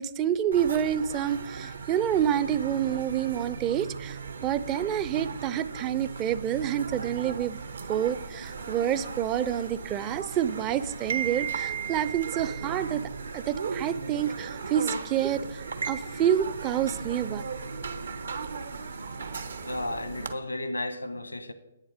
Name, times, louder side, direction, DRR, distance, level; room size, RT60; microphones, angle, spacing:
voice 1, 0.0-7.6 7.9-13.0 13.3-17.4, right 9 dB, 25° right, 0.4 m, -28 dB
sound 1, 0.5-20.3, right 5 dB, 65° right, 0.9 m, -36 dB
voice 2, 19.6-21.5, left 1 dB, 85° left, 1.0 m, -33 dB
10.5 x 8.7 x 5.0 m
figure-of-eight pair, 130°, 0 cm